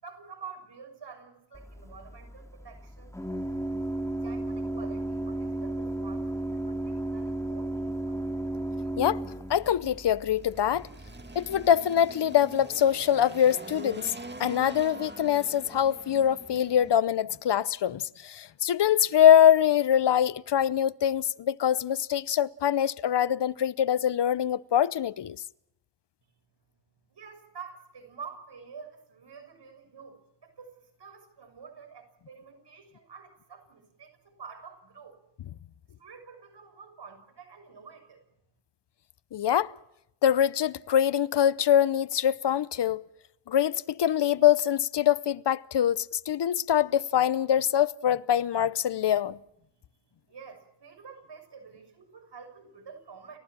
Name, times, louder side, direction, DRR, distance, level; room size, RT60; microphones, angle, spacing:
voice 1, 0.0-3.2 4.1-8.2 26.6-35.2 36.0-38.3 50.0-53.4, right 6 dB, 75° right, 6.5 m, -48 dB
Organ, 1.5-11.7, right 1 dB, 5° left, 2.8 m, -34 dB
voice 2, 9.5-10.9 11.3-14.1 14.4-25.4 39.3-39.7 40.2-43.0 43.5-49.4, left 10 dB, 75° left, 0.8 m, -24 dB
Engine, 9.5-16.9, right 3 dB, 25° right, 2.0 m, -45 dB
30.0 x 15.0 x 7.5 m
wide cardioid pair, 75°, 42 cm